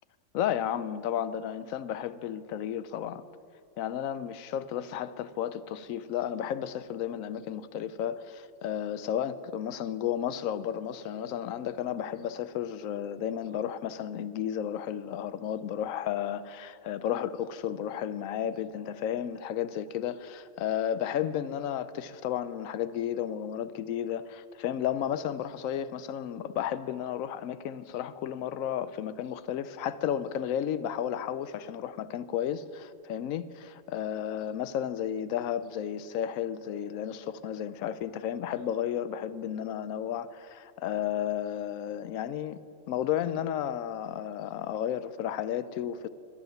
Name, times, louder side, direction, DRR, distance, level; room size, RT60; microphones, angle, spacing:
voice 1, 0.3-3.2 3.8-42.6 42.9-46.1, left 10 dB, 75° left, 1.0 m, -33 dB
12.0 x 10.0 x 9.2 m
omnidirectional pair, 1.4 m